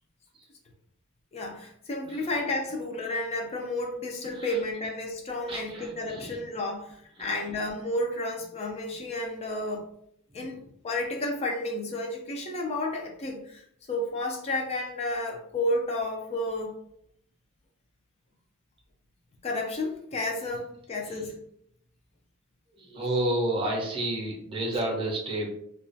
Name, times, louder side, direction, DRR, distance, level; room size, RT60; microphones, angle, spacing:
voice 1, 1.3-9.9 10.3-16.8 19.4-21.4, left 1 dB, 30° left, 2 dB, 0.3 m, -32 dB
voice 2, 5.5-6.4 7.2-7.3 10.3-10.6 21.0-21.2 22.7-25.5, right 1 dB, 25° right, -2 dB, 0.6 m, -31 dB
2.2 x 2.2 x 2.5 m, 0.70 s
head